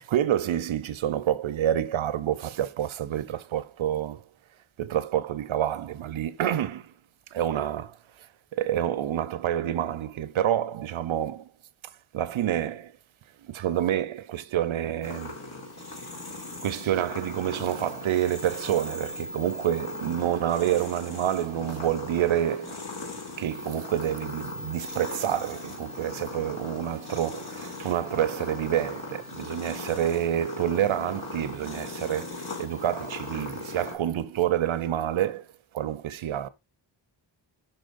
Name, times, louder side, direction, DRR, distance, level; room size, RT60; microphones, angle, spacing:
voice 1, 0.0-4.2 4.8-6.9 7.3-8.3 8.5-11.5 12.1-12.9 13.4-15.3 16.6-22.9 23.4-35.5 35.7-36.5, right 11 dB, 85° right, 0.7 m, -28 dB
sound 1, 15.0-34.0, left 2 dB, 55° left, 2.7 m, -38 dB
12.0 x 4.1 x 2.5 m
wide cardioid pair, 105°, 46 cm